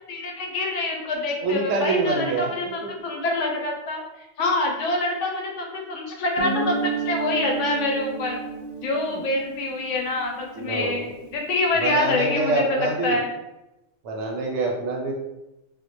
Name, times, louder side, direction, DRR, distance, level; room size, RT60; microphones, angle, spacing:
voice 1, 0.1-6.8 7.0-8.4 8.8-13.3, left 2 dB, 85° left, 0 dB, 0.9 m, -26 dB
voice 2, 1.4-2.5 9.1-9.2 10.5-11.1 11.7-13.2 14.0-15.1, right 2 dB, 75° right, 0 dB, 0.9 m, -25 dB
Guitar, 6.4-10.9, right 3 dB, 60° left, 0.7 m, -31 dB
2.1 x 2.1 x 2.9 m, 0.96 s
omnidirectional pair, 1.2 m